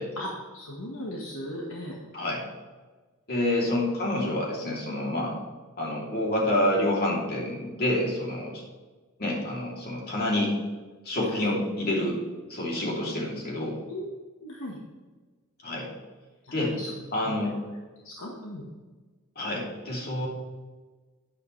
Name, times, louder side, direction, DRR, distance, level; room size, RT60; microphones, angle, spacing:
voice 1, 0.2-1.9 5.2-5.4 11.3-11.4 13.9-14.0 14.4-14.8 16.4-16.9 17.2-17.6 18.0-18.6, left 1 dB, 65° left, -2 dB, 1.5 m, -38 dB
voice 2, 3.3-5.4 5.8-8.6 9.2-10.5 11.0-12.2 12.5-13.8 15.6-15.9 16.5-16.7 17.1-17.5 19.3-20.3, left 1 dB, 45° left, -3 dB, 3.1 m, -28 dB
11.5 x 10.5 x 3.3 m, 1.3 s
head